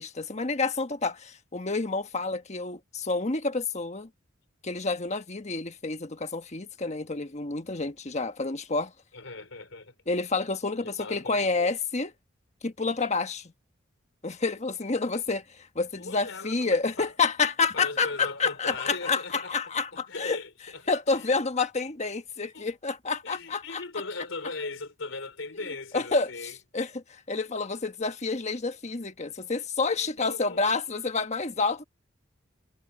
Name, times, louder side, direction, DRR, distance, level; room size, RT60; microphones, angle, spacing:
voice 1, 0.0-4.1 4.6-8.9 10.1-12.1 12.6-13.5 14.2-20.4 20.9-23.8 25.9-26.3 26.7-31.8, left 4 dB, 35° left, 1.3 m, -29 dB
voice 2, 9.1-9.9 10.8-11.8 16.0-17.1 17.7-20.8 21.1-21.3 22.5-22.7 23.2-26.6 30.0-30.7, left 3 dB, 85° left, 3.8 m, -39 dB
head